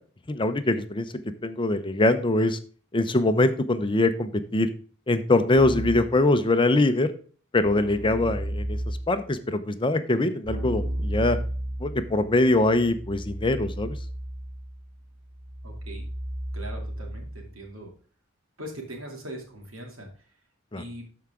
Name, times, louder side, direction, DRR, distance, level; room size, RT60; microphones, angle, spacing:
voice 1, 0.3-1.1 1.4-2.6 2.9-4.7 5.1-7.1 7.5-8.8 9.1-11.4 11.8-13.9 20.7-20.8, left 2 dB, 25° left, 9 dB, 0.6 m, -23 dB
Keyboard (musical), 5.5-6.2 7.6-9.2 10.4-17.5, right 1 dB, 55° right, 3.6 m, -33 dB
voice 2, 15.6-16.1 16.5-17.9 18.6-20.1 20.8-21.0, right 1 dB, 85° right, 1 dB, 2.6 m, -40 dB
12.5 x 4.7 x 3.7 m, 0.41 s
head